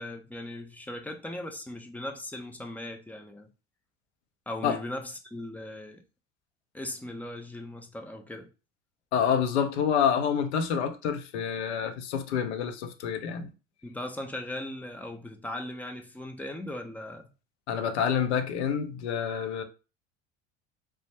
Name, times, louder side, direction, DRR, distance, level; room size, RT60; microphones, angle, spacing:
voice 1, 0.0-3.5 4.5-6.0 6.7-8.5 13.8-17.3, left 1 dB, 5° left, 0.3 m, -38 dB
voice 2, 9.1-13.5 17.7-19.6, left 8 dB, 65° left, 0.6 m, -27 dB
3.3 x 2.1 x 2.8 m
figure-of-eight pair, 65°, 36 cm